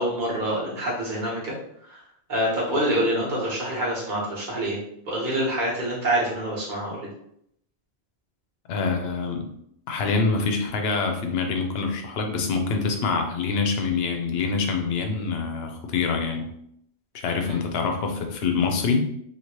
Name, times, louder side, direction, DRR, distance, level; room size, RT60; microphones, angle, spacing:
voice 1, 0.0-1.5 1.9-2.0 2.3-4.8 5.1-7.1 17.5-17.6, right 1 dB, 50° right, -6 dB, 1.3 m, -26 dB
voice 2, 8.7-9.5 9.9-16.5 17.1-19.1, left 4 dB, 70° left, 4 dB, 0.8 m, -25 dB
2.9 x 2.8 x 2.9 m, 0.72 s
omnidirectional pair, 1.1 m